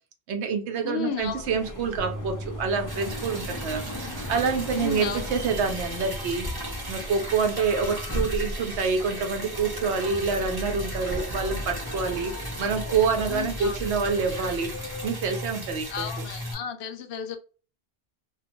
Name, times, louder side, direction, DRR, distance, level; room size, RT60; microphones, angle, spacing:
voice 1, 0.3-6.5 6.9-12.3 12.6-14.7 15.0-16.0, right 5 dB, 85° right, 0.9 m, -27 dB
voice 2, 0.8-1.4 4.8-5.2 13.3-13.8 15.9-17.4, left 7 dB, 80° left, 0.8 m, -33 dB
sound 1, 1.2-15.1, left 1 dB, 25° left, 0.4 m, -37 dB
sound 2, 2.0-8.2, equal, 60° right, 1.0 m, -42 dB
Liquid, 2.9-16.5, equal, 25° right, 0.8 m, -37 dB
2.4 x 2.2 x 2.6 m
omnidirectional pair, 1.1 m